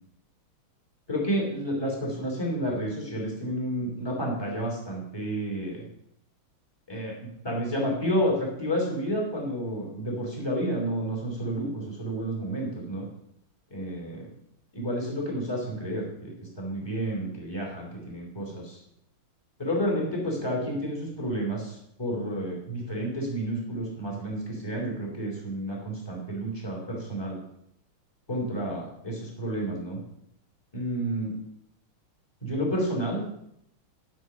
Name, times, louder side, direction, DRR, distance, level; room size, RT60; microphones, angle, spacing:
voice 1, 1.1-5.9 6.9-13.1 13.7-14.3 14.7-18.8 19.6-27.4 28.3-30.0 30.7-31.3 32.4-33.2, equal, 10° left, -2 dB, 3.1 m, -30 dB
11.5 x 6.1 x 6.1 m, 0.74 s
omnidirectional pair, 2.3 m